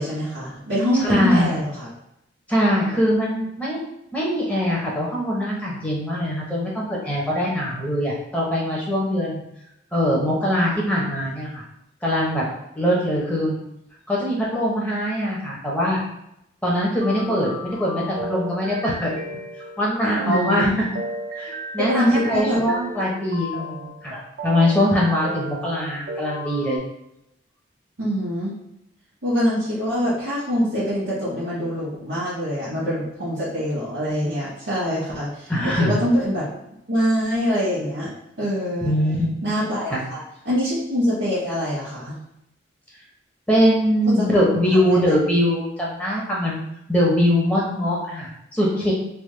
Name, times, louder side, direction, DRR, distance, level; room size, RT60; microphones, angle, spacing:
voice 1, 0.0-1.9 10.4-10.5 20.2-20.7 21.9-22.6 24.1-24.2 28.0-28.6 29.2-36.5 36.9-38.1 38.4-38.9 39.4-40.2 40.4-42.2 44.2-44.3 44.7-45.0, equal, 80° right, -11 dB, 1.2 m, -24 dB
voice 2, 1.0-1.6 2.5-3.8 4.1-9.4 9.9-11.6 12.0-12.4 12.8-13.6 14.1-16.0 16.6-19.1 19.8-20.9 21.4-24.1 24.4-26.8 35.5-36.0 38.8-39.2 39.4-39.5 39.9-40.0 43.5-46.6 46.9-48.9, equal, 5° left, -5 dB, 0.7 m, -22 dB
sound 1, 17.0-26.8, right 1 dB, 60° right, 0.4 m, -34 dB
3.4 x 2.1 x 3.1 m, 0.81 s
head